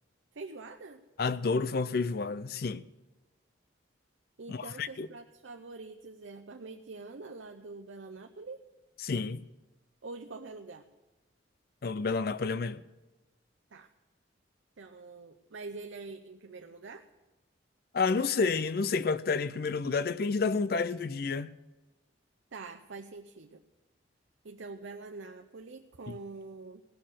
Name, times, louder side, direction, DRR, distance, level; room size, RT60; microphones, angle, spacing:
voice 1, 0.3-1.0 4.4-8.6 10.0-10.8 13.7-13.9 14.8-17.0 22.5-23.6 24.4-26.8, right 3 dB, 75° right, 0.6 m, -45 dB
voice 2, 1.2-2.9 4.5-5.1 9.0-9.4 11.8-12.8 17.9-21.5 26.1-26.2, left 4 dB, 50° left, 0.4 m, -30 dB
17.5 x 6.5 x 7.5 m
head